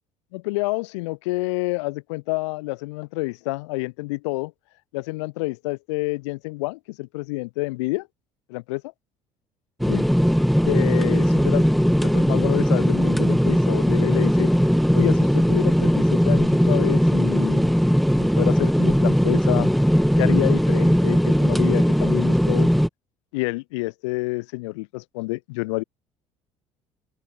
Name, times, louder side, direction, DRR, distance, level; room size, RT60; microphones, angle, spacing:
voice 1, 0.3-4.5 4.9-8.1 8.5-8.8 9.8-10.1 10.6-14.5 14.9-17.8 18.2-19.7 20.2-22.7 23.3-25.8, left 24 dB, 85° left, 2.9 m, -28 dB
sound 1, 9.8-22.9, equal, ahead, 1.1 m, -19 dB
open air
hypercardioid pair, 65°, 15 cm